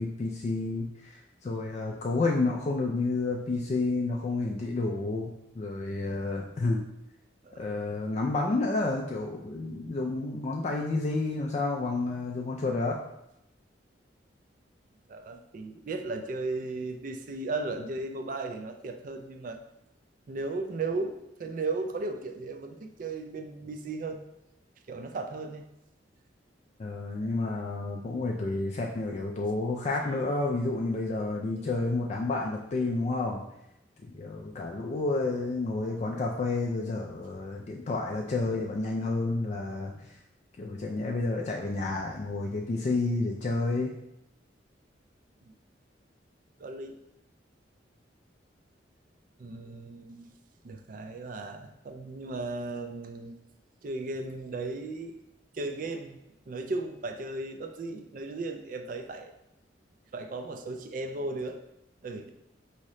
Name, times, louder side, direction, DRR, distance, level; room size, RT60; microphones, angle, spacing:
voice 1, 0.0-6.8 7.6-13.0 26.8-33.4 34.0-40.2 40.6-43.9, left 3 dB, 35° left, 0 dB, 0.3 m, -30 dB
voice 2, 15.1-19.6 20.3-24.2 24.9-25.6 45.4-45.5 46.6-47.0 49.4-50.3 50.6-53.3 53.8-55.2 55.5-56.2 56.5-59.3 60.1-61.6 62.0-62.3, right 3 dB, 45° right, 6 dB, 0.3 m, -36 dB
4.8 x 2.8 x 3.1 m, 0.84 s
head